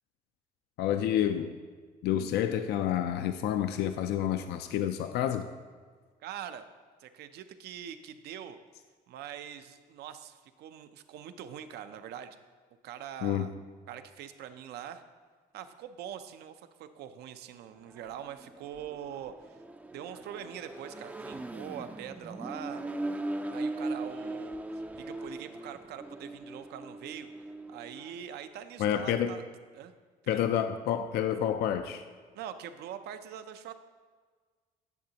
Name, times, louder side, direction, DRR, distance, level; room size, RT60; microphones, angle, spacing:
voice 1, 0.8-1.5 2.0-5.5 13.2-13.5 28.8-29.3 30.3-32.0, left 10 dB, 75° left, 9 dB, 0.4 m, -29 dB
voice 2, 6.2-6.6 7.0-8.6 9.1-12.4 12.8-13.5 13.9-15.0 15.5-19.6 19.9-22.8 23.5-27.3 27.7-29.4 29.7-29.9 30.2-30.4 32.3-33.7, right 9 dB, 75° right, 10 dB, 0.6 m, -43 dB
Accelerating revving vroom, 17.8-28.2, right 2 dB, 10° right, 0.4 m, -39 dB
10.5 x 6.8 x 2.8 m, 1.5 s
cardioid pair, 110°, 17 cm